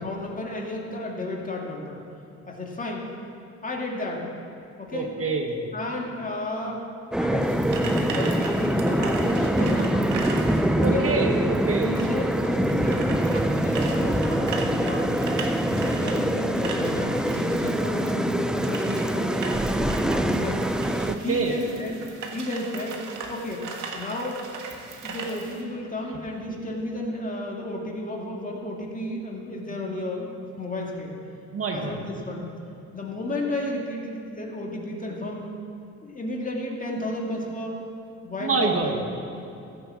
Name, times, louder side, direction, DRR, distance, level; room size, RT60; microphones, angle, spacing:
voice 1, 0.0-2.0 2.5-3.1 3.6-4.3 4.8-5.1 5.7-6.8 7.2-10.1 10.8-11.1 11.8-22.0 22.3-23.0 23.3-23.7 23.9-24.4 25.0-31.1 31.7-32.5 32.9-35.5 36.0-37.8 38.2-39.0, left 1 dB, 25° left, -1 dB, 2.3 m, -32 dB
voice 2, 4.9-5.6 10.8-11.9 21.1-21.6 31.5-32.0 38.4-39.0, right 4 dB, 50° right, 3 dB, 1.4 m, -26 dB
sound 1, 7.1-21.2, right 1 dB, ahead, 0.5 m, -24 dB
sound 2, 7.4-25.6, right 4 dB, 80° right, 1.6 m, -38 dB
15.0 x 6.7 x 7.6 m, 2.8 s
cardioid pair, 90°, 30 cm